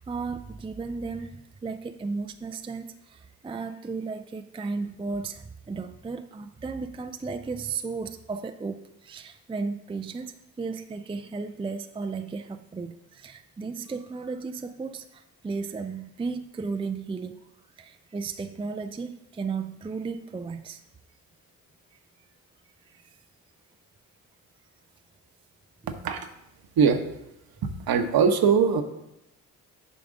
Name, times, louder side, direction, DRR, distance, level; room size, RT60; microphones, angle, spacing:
voice 1, 0.0-17.4 17.8-20.8, right 4 dB, 10° right, 9 dB, 0.5 m, -34 dB
voice 2, 27.6-28.8, right 6 dB, 50° right, 8 dB, 1.1 m, -21 dB
9.8 x 5.9 x 3.8 m, 0.86 s
hypercardioid pair, 45°, 46 cm